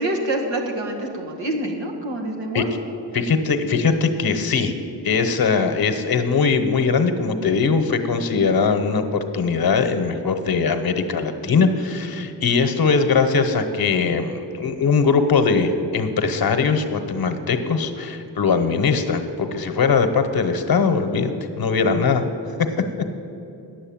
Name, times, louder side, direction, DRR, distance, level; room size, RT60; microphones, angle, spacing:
voice 1, 0.0-2.6, right 1 dB, 85° right, 2 dB, 1.8 m, -26 dB
voice 2, 3.1-4.7 5.0-22.3, left 5 dB, 55° left, 8 dB, 1.0 m, -20 dB
9.9 x 7.7 x 8.7 m, 2.9 s
wide cardioid pair, 135°, 43 cm